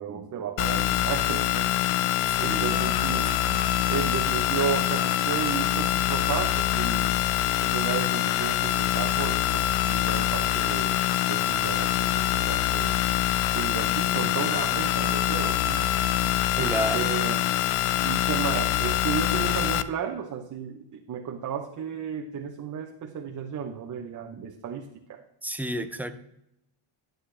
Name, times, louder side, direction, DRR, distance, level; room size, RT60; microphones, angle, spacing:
voice 1, 0.0-1.7 2.4-7.2 7.6-13.0 13.5-17.5 18.0-25.2, right 7 dB, 40° right, 3 dB, 0.8 m, -34 dB
sound 1, 0.6-19.8, left 13 dB, 85° left, 0.7 m, -25 dB
voice 2, 2.4-3.3 16.6-17.2 25.4-26.1, right 1 dB, 5° right, 8 dB, 0.4 m, -32 dB
11.5 x 7.9 x 3.3 m, 0.82 s
cardioid pair, 145°, 48 cm